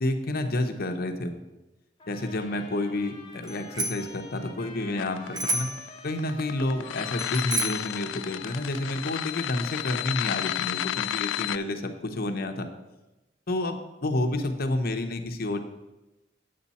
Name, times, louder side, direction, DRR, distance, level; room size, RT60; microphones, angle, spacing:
voice 1, 0.0-1.4 2.1-5.7 6.0-12.7 13.5-15.6, left 1 dB, 55° left, 5 dB, 0.8 m, -29 dB
Trumpet, 2.0-11.1, left 3 dB, 25° left, 1.5 m, -48 dB
Bicycle bell, 3.4-4.1 5.3-5.9 7.2-7.9, right 2 dB, 20° right, 0.7 m, -30 dB
sound 1, 5.0-11.6, left 12 dB, 85° left, 0.3 m, -32 dB
8.7 x 7.0 x 4.2 m, 1.0 s
head